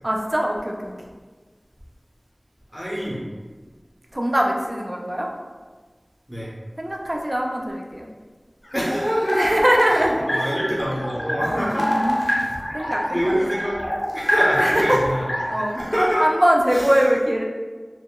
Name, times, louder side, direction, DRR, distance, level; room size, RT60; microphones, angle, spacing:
voice 1, 0.0-0.9 4.1-5.3 6.8-8.1 9.3-10.5 11.4-12.2 12.7-13.3 14.6-15.0 15.5-15.8 16.2-17.4, equal, 40° right, 0 dB, 0.3 m, -22 dB
voice 2, 2.7-3.2 6.3-6.5 8.7-9.5 9.9-11.9 12.2-12.6 13.1-13.8 14.1-15.2 15.8-16.2 16.7-17.0, equal, 5° left, -8 dB, 0.6 m, -25 dB
sound 1, 8.6-16.2, equal, 65° left, 0.5 m, -26 dB
2.7 x 2.2 x 2.2 m, 1.4 s
wide cardioid pair, 45°, 0 cm